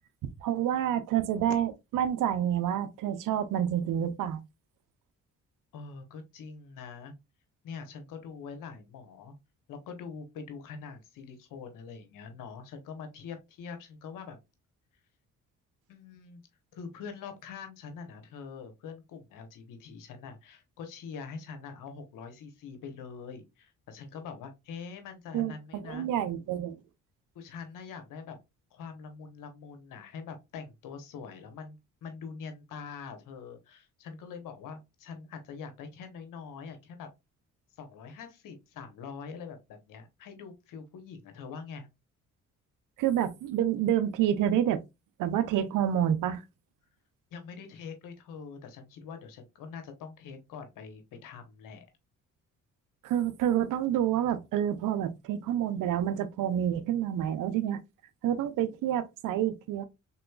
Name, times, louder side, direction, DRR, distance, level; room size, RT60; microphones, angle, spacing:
voice 1, 0.2-4.4 25.3-26.8 43.0-44.8 45.2-46.4 53.0-57.8 58.2-59.8, right 10 dB, 75° right, 0.6 m, -28 dB
voice 2, 5.7-7.1 7.6-9.3 9.7-14.4 15.9-16.4 16.7-26.1 27.3-28.4 28.7-37.1 37.8-41.9 47.3-51.8, left 5 dB, 80° left, 1.0 m, -44 dB
3.6 x 3.0 x 2.3 m
supercardioid pair, 70°, 32 cm